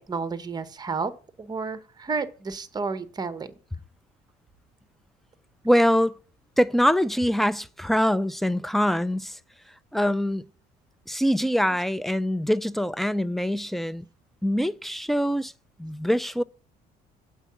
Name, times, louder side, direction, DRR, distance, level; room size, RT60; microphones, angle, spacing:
voice 1, 0.1-1.1 1.4-3.5, right 4 dB, 25° right, 0.9 m, -31 dB
voice 2, 5.6-6.2 6.6-9.4 9.9-10.4 11.1-14.0 14.4-15.5 15.8-16.4, equal, ahead, 0.4 m, -24 dB
8.0 x 4.6 x 7.2 m
cardioid pair, 110°, 17 cm